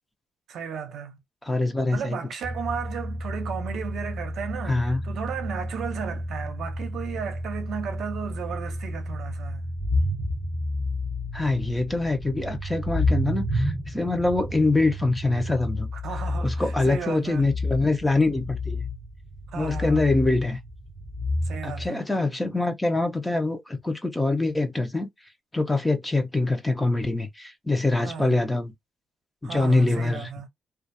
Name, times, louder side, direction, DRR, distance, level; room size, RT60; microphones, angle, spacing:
voice 1, 0.5-1.2 1.9-9.6 16.0-17.4 19.5-20.0 21.4-22.0 28.0-28.3 29.4-30.5, right 7 dB, 70° right, 0.7 m, -34 dB
voice 2, 1.4-2.2 4.7-5.0 11.3-15.9 16.4-18.9 19.5-20.6 21.6-25.1 25.5-28.7 29.4-30.3, left 2 dB, 10° left, 0.7 m, -24 dB
sound 1, 2.4-21.9, left 1 dB, 35° left, 1.3 m, -31 dB
2.4 x 2.4 x 2.6 m
cardioid pair, 90°, 0 cm